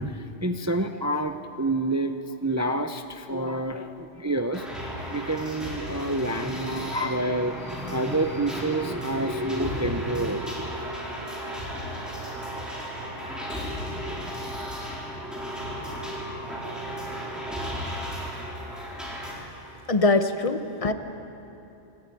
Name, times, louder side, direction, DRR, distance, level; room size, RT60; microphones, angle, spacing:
voice 1, 0.0-4.6 5.1-10.7, right 1 dB, 20° right, 7 dB, 0.5 m, -28 dB
sound 1, 4.5-19.3, equal, ahead, 4.4 m, -34 dB
voice 2, 19.9-20.9, left 3 dB, 30° left, 8 dB, 1.0 m, -22 dB
27.5 x 13.0 x 9.3 m, 2.9 s
omnidirectional pair, 1.3 m